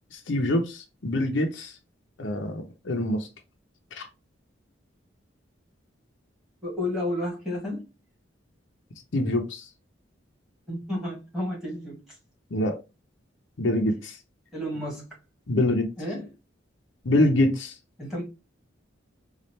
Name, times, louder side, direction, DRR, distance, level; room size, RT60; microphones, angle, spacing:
voice 1, 0.1-1.7 2.2-3.3 4.0-4.1 9.1-9.7 12.5-12.8 13.6-14.2 15.5-15.9 17.0-17.7, left 1 dB, 70° left, 0.7 m, -25 dB
voice 2, 6.6-7.8 10.7-12.2 14.5-15.2 16.0-16.3 18.0-18.2, left 1 dB, 5° right, 1.7 m, -31 dB
4.1 x 2.4 x 3.1 m
head